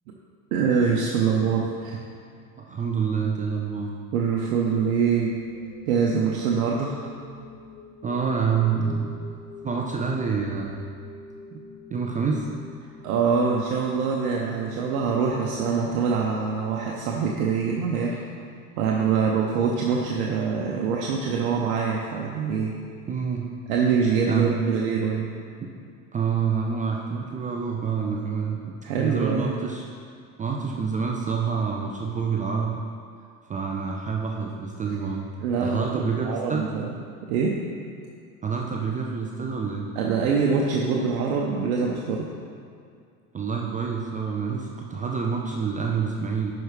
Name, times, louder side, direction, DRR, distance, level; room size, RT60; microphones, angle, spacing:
voice 1, 0.5-2.0 4.1-5.4 5.9-7.1 13.0-18.2 18.8-22.7 23.7-25.3 28.8-29.5 35.4-36.9 37.3-37.6 39.9-42.2, right 5 dB, 65° right, -2 dB, 0.9 m, -24 dB
voice 2, 2.6-3.9 8.0-9.2 9.6-10.9 11.5-11.6 11.9-12.5 23.0-23.5 24.3-24.6 26.1-29.9 30.4-32.8 33.5-35.3 35.6-36.6 38.4-39.9 43.3-46.5, right 6 dB, 20° right, 0 dB, 0.5 m, -27 dB
sound 1, 5.1-17.2, left 3 dB, 60° left, 1.7 m, -45 dB
11.0 x 4.8 x 3.2 m, 2.3 s
hypercardioid pair, 75°, 45 cm